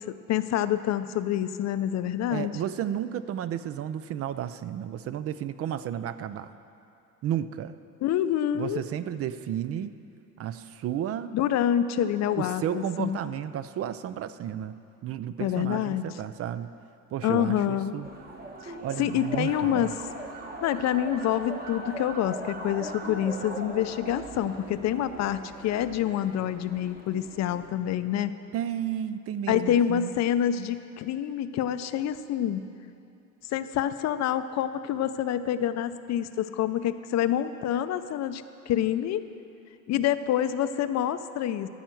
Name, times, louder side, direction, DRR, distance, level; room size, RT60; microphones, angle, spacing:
voice 1, 0.0-2.5 8.0-8.8 11.3-13.2 15.4-16.0 17.2-18.0 18.6-18.7 19.0-19.9 20.6-28.4 29.5-32.7 33.5-39.2 39.9-41.7, left 10 dB, 55° left, 12 dB, 0.5 m, -27 dB
voice 2, 2.3-6.5 7.2-7.7 8.5-9.9 10.4-11.3 12.4-14.8 15.0-16.7 17.1-18.1 18.8-19.9 28.5-30.2, right 10 dB, 45° right, 13 dB, 0.4 m, -32 dB
sound 1, 18.0-27.7, right 2 dB, 25° right, 1.2 m, -40 dB
13.5 x 5.6 x 7.7 m, 2.6 s
cardioid pair, 130°, 33 cm